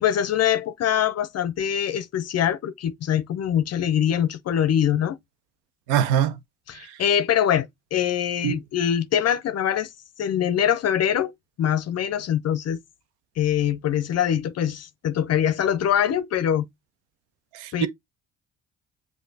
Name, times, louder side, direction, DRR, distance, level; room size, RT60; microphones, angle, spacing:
voice 1, 0.0-5.2 6.7-9.9 10.2-11.3 11.6-12.8 13.4-16.7 17.7-17.9, left 9 dB, 50° left, 0.5 m, -23 dB
voice 2, 5.9-6.3 8.4-8.6 17.6-17.9, right 10 dB, 90° right, 0.6 m, -22 dB
7.7 x 2.6 x 2.6 m
hypercardioid pair, 50°, 34 cm